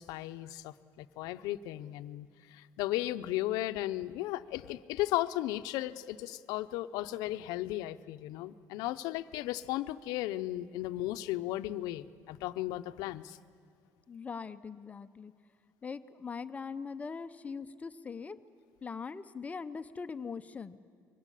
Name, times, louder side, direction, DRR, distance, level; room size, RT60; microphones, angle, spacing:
voice 1, 0.0-13.4, left 15 dB, 90° left, 12 dB, 0.7 m, -35 dB
voice 2, 14.1-15.3 15.8-18.4 18.8-20.8, left 5 dB, 20° left, 11 dB, 0.6 m, -41 dB
23.5 x 17.5 x 9.9 m, 2.2 s
cardioid pair, 130°, 6 cm